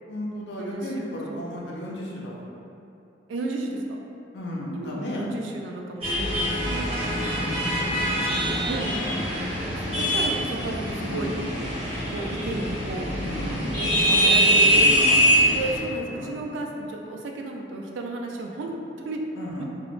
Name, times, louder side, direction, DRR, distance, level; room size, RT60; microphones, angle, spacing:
voice 1, 0.1-2.4 4.3-5.2 7.7-8.9 10.9-11.3 13.3-13.7 14.0-15.3 16.1-16.5 19.3-19.6, left 1 dB, 65° left, -3 dB, 0.4 m, -34 dB
voice 2, 0.6-1.0 1.3-1.5 3.3-3.8 4.7-6.9 8.2-9.0 10.0-11.4 12.1-13.1 13.8-13.9 14.2-14.9 15.3-18.7 19.0-19.2 19.6-19.7, right 2 dB, 85° right, 1 dB, 0.3 m, -33 dB
sound 1, 6.0-15.8, equal, 35° right, 0.9 m, -23 dB
2.4 x 2.0 x 3.0 m, 2.6 s
head